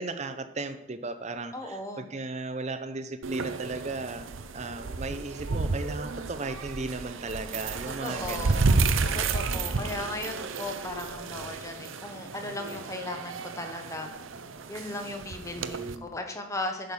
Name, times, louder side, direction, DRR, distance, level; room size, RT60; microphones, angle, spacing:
voice 1, 0.0-8.7 9.4-10.0 15.5-16.1, right 3 dB, 35° right, 9 dB, 0.7 m, -36 dB
voice 2, 1.5-2.1 8.0-8.7 9.1-14.1 14.7-16.9, left 2 dB, 15° left, 4 dB, 1.0 m, -37 dB
sound 1, 3.2-16.0, right 4 dB, 80° right, 0.7 m, -31 dB
10.5 x 6.6 x 5.5 m, 0.92 s
head